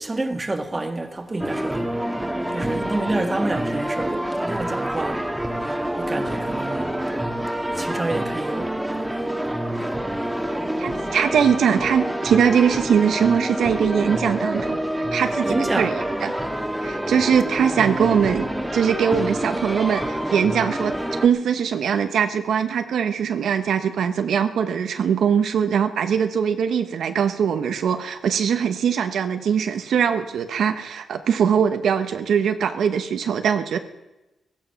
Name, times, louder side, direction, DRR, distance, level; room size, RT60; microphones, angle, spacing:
voice 1, 0.0-1.9 2.5-5.3 6.0-6.9 7.7-8.7 15.4-16.2 17.6-17.8, right 2 dB, 25° right, 1.5 m, -28 dB
sound 1, 1.4-21.3, right 1 dB, 10° right, 1.5 m, -27 dB
voice 2, 10.8-16.3 16.8-20.9 21.2-33.8, right 7 dB, 80° right, 0.9 m, -21 dB
16.0 x 14.0 x 5.8 m
cardioid pair, 75°, 0 cm